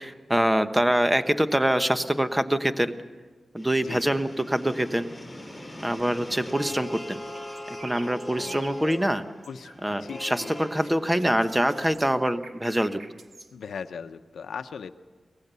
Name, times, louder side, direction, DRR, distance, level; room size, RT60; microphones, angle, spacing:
voice 1, 0.0-2.9 3.5-5.1 5.8-7.2 7.8-9.2 9.8-13.0, right 1 dB, 10° right, 10 dB, 1.1 m, -24 dB
sound 1, 3.6-11.9, left 1 dB, 10° left, 5.5 m, -41 dB
voice 2, 3.8-4.2 6.8-6.9 8.0-8.7 9.5-10.9 13.5-14.9, left 6 dB, 90° left, 9 dB, 0.8 m, -40 dB
sound 2, 7.3-9.8 10.1-13.5, right 3 dB, 60° right, 1.9 m, -47 dB
24.0 x 18.0 x 6.9 m, 1.4 s
wide cardioid pair, 80°, 0 cm